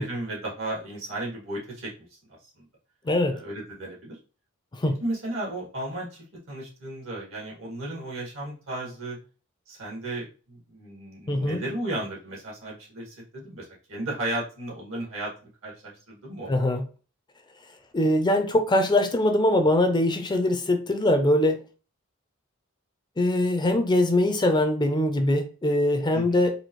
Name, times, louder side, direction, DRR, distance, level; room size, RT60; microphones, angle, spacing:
voice 1, 0.0-1.9 2.6-2.7 3.3-4.2 5.0-9.2 9.7-16.6 26.1-26.4, right 1 dB, 75° right, -3 dB, 2.0 m, -34 dB
voice 2, 3.0-3.3 4.7-5.0 11.3-11.6 16.5-16.8 17.9-21.6 23.2-26.5, left 1 dB, 20° left, 6 dB, 0.5 m, -22 dB
4.2 x 2.6 x 3.0 m, 0.36 s
head